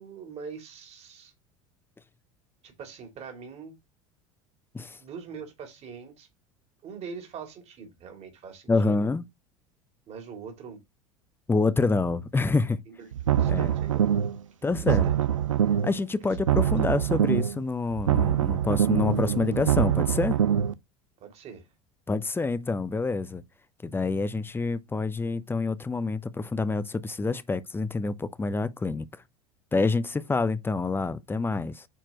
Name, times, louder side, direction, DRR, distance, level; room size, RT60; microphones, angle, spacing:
voice 1, 0.0-1.3 2.6-3.8 4.9-6.3 6.8-9.0 10.1-10.8 12.9-13.1 13.4-14.1 14.6-15.2 21.2-21.7, right 6 dB, 40° right, 2.9 m, -43 dB
voice 2, 8.7-9.2 11.5-12.8 13.4-13.7 14.6-15.1 15.8-20.4 22.1-23.4 23.8-29.2 29.7-31.9, left 3 dB, 15° left, 0.8 m, -27 dB
sound 1, 13.1-14.4 14.7-16.0 16.3-17.6 17.9-20.7, right 9 dB, 80° right, 0.5 m, -24 dB
9.1 x 4.5 x 3.0 m
figure-of-eight pair, 75°, 16 cm